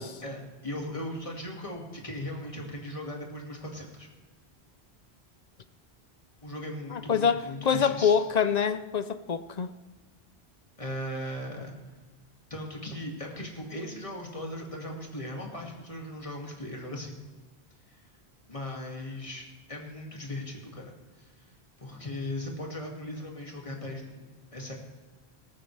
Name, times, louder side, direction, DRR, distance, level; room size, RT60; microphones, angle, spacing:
voice 1, 0.2-4.1 6.4-8.2 10.8-11.7 12.5-17.1 17.9-18.0 18.5-20.8 21.2-21.3 21.8-24.7, left 1 dB, 30° left, -1 dB, 2.3 m, -38 dB
voice 2, 6.9-9.7, left 7 dB, 50° left, 12 dB, 0.6 m, -26 dB
18.0 x 14.0 x 3.3 m, 1.3 s
omnidirectional pair, 1.1 m